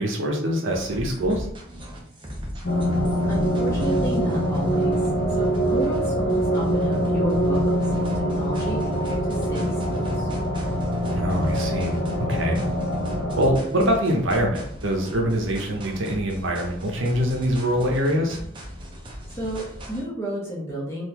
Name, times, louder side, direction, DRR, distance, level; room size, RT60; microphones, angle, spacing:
voice 1, 0.0-1.5 11.1-12.6 13.3-18.4, equal, 65° right, 1 dB, 0.7 m, -24 dB
sound 1, 0.7-20.0, equal, 25° right, 0.5 m, -38 dB
sound 2, 2.6-13.5, equal, 55° left, 0.6 m, -24 dB
voice 2, 3.3-5.0 5.3-10.3 19.3-21.1, right 1 dB, 10° left, -6 dB, 1.1 m, -32 dB
3.8 x 2.5 x 2.9 m, 0.69 s
head